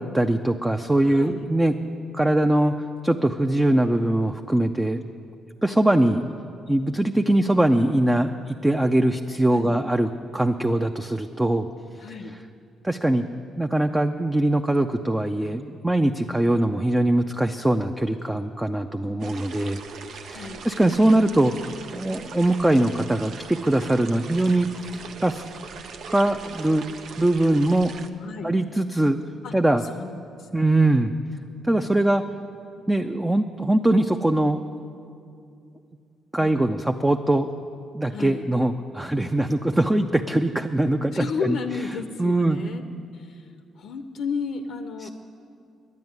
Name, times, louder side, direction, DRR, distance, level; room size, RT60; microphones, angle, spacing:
voice 1, 0.0-1.7 2.1-5.0 5.6-6.2 6.7-11.7 12.8-13.2 13.6-19.8 20.1-25.4 26.1-26.8 27.2-28.0 28.4-29.2 29.5-29.8 30.5-31.1 31.7-32.2 32.9-34.6 36.3-37.5 37.9-41.6 42.2-42.6 45.0-45.1, right 1 dB, 10° right, 5 dB, 0.5 m, -22 dB
voice 2, 1.0-1.5 9.5-9.8 12.0-12.4 19.1-19.2 20.3-20.7 28.2-28.5 29.4-31.0 36.4-36.6 38.1-38.5 41.1-42.8 43.1-45.1, left 5 dB, 75° left, 7 dB, 0.6 m, -34 dB
sound 1, 19.2-28.1, right 5 dB, 70° right, 0.7 m, -40 dB
10.5 x 9.6 x 9.4 m, 2.5 s
cardioid pair, 90°, 0 cm